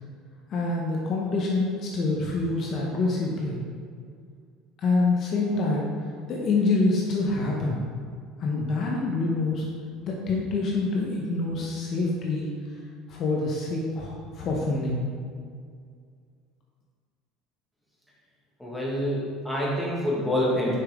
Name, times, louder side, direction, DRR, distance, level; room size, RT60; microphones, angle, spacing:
voice 1, 0.5-3.6 4.8-5.9 6.3-7.8 8.4-9.6 10.0-12.5 13.1-15.0, left 3 dB, 40° left, -2 dB, 0.9 m, -26 dB
voice 2, 18.6-20.8, left 1 dB, ahead, -6 dB, 1.6 m, -26 dB
6.7 x 5.6 x 3.6 m, 2.2 s
cardioid pair, 150°, 0 cm